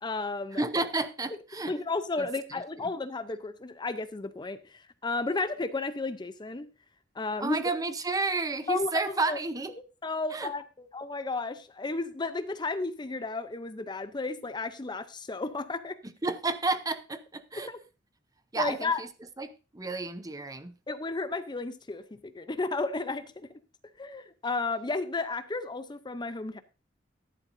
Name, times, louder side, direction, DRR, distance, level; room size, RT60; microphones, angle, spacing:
voice 1, 0.0-0.6 1.7-6.7 7.1-7.6 8.7-8.9 9.3-9.4 10.0-16.0 17.7-17.8 18.6-19.0 20.9-23.5 24.0-26.6, left 3 dB, 25° left, 12 dB, 0.6 m, -33 dB
voice 2, 0.5-1.7 2.2-2.6 7.4-9.7 10.3-10.5 16.2-17.7 18.5-19.1 19.4-20.7, right 3 dB, 20° right, 11 dB, 0.7 m, -31 dB
14.0 x 11.0 x 2.6 m, 0.31 s
head